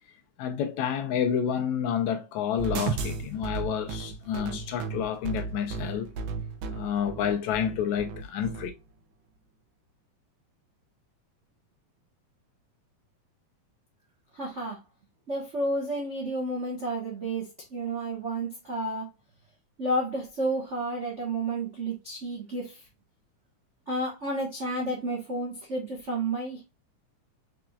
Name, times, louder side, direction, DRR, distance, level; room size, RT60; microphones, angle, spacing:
voice 1, 0.4-6.1 6.7-8.7, left 8 dB, 75° left, 1.9 m, -29 dB
sound 1, 2.6-8.7, right 5 dB, 90° right, 1.3 m, -34 dB
voice 2, 14.3-14.8 15.3-19.1 19.8-22.8 23.9-26.6, right 1 dB, 50° right, 0.8 m, -31 dB
4.8 x 4.6 x 2.4 m
omnidirectional pair, 3.6 m